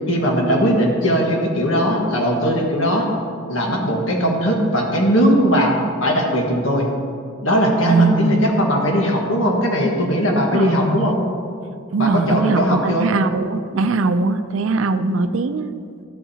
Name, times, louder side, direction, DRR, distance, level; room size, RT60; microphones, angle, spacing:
voice 1, 0.1-3.1 3.5-6.9 7.4-11.2 12.0-13.1, equal, 85° left, 0 dB, 1.6 m, -19 dB
voice 2, 4.2-4.5 7.8-8.4 10.5-11.1 11.9-15.7, right 3 dB, 85° right, 10 dB, 0.5 m, -21 dB
13.0 x 8.2 x 2.9 m, 2.3 s
head